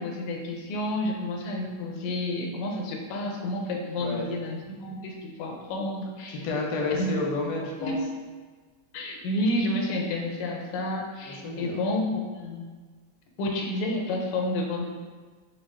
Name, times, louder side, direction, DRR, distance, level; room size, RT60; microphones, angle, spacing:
voice 1, 0.0-6.4 7.0-7.1 7.8-8.0 8.9-12.6 13.4-14.9, left 1 dB, 90° left, 1 dB, 1.5 m, -30 dB
voice 2, 6.3-8.0 11.3-11.9, left 3 dB, 70° left, -1 dB, 1.0 m, -30 dB
4.1 x 2.2 x 3.6 m, 1.4 s
omnidirectional pair, 2.4 m